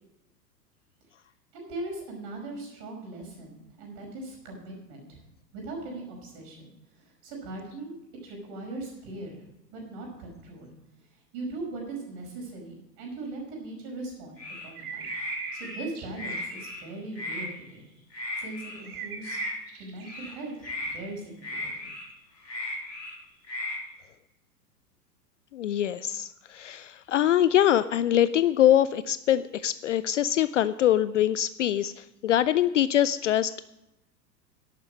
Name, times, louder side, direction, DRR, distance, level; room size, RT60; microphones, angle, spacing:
voice 1, 1.5-5.2 5.5-8.0 8.2-9.4 9.7-10.7 11.3-15.1 15.5-17.9 18.4-19.4 19.8-20.6 20.9-21.3 21.6-21.9, right 2 dB, 40° right, 0 dB, 5.3 m, -39 dB
sound 1, 14.4-14.7 15.0-15.7 16.1-16.8 17.1-17.5 18.1-18.8 19.2-19.5 20.0-20.3 20.6-21.0 21.4-22.1 22.4-23.2 23.4-23.8, left 1 dB, 80° left, 3.4 m, -36 dB
sound 2, 14.8-16.8 17.4-17.6 18.8-20.9, right 6 dB, 60° right, 2.2 m, -40 dB
voice 2, 25.5-33.6, left 11 dB, 50° left, 15 dB, 0.4 m, -24 dB
11.0 x 8.9 x 6.3 m, 0.91 s
figure-of-eight pair, 95°, 50 cm